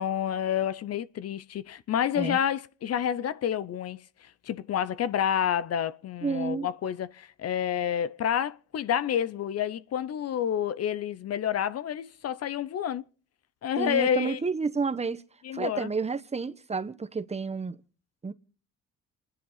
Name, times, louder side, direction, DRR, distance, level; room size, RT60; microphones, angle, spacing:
voice 1, 0.0-13.0 13.6-14.4 15.4-15.9, left 9 dB, 55° left, 0.6 m, -29 dB
voice 2, 6.2-6.7 13.8-15.2 15.5-17.8 18.2-18.3, right 4 dB, 20° right, 1.0 m, -30 dB
29.0 x 10.5 x 4.0 m
cardioid pair, 90°, 30 cm